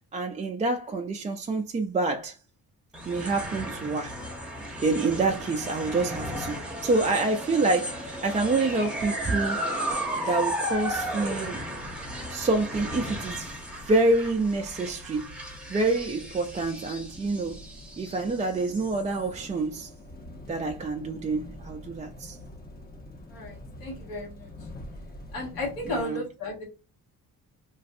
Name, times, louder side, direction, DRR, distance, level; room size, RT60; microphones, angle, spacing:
voice 1, 0.1-2.4 3.1-4.2 4.8-6.6 6.8-9.7 10.2-11.6 12.3-13.5 13.9-17.6 18.0-19.9 20.5-22.4 25.8-26.2, right 3 dB, 20° right, 0.3 m, -27 dB
sound 1, 2.9-19.4, equal, 5° right, 0.8 m, -35 dB
sound 2, 11.7-26.0, left 1 dB, 25° left, 0.8 m, -46 dB
voice 2, 23.3-24.5 25.3-26.6, left 2 dB, 75° left, 1.3 m, -34 dB
3.1 x 2.5 x 2.5 m
cardioid pair, 105°, 35 cm